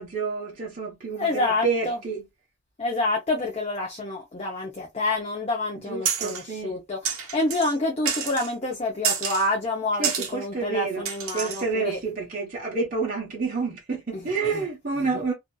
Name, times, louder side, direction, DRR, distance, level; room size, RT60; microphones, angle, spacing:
voice 1, 0.0-2.2 5.8-6.8 10.0-11.1 11.3-15.3, right 4 dB, 40° right, 0.8 m, -29 dB
voice 2, 1.1-2.0 2.8-12.0 14.1-14.6 15.1-15.3, left 2 dB, 30° left, 0.6 m, -28 dB
sound 1, 6.1-6.4 7.0-7.7 8.1-8.5 9.0-9.5 10.0-10.3 11.1-11.7, right 7 dB, 75° right, 0.8 m, -28 dB
2.6 x 2.5 x 2.2 m
head